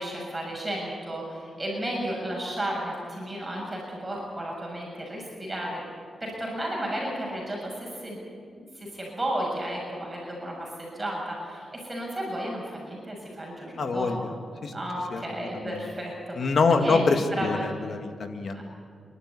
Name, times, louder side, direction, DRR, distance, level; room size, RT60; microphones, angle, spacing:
voice 1, 0.0-5.8 6.2-8.2 8.6-14.4 14.7-17.0 17.4-17.7 18.5-18.6, right 1 dB, 20° right, -2 dB, 6.7 m, -33 dB
voice 2, 13.8-14.3 14.6-14.7 15.1-15.2 15.5-15.8 16.4-18.6, left 4 dB, 60° left, 6 dB, 2.0 m, -25 dB
27.0 x 12.0 x 9.7 m, 2.3 s
cardioid pair, 75°, 0 cm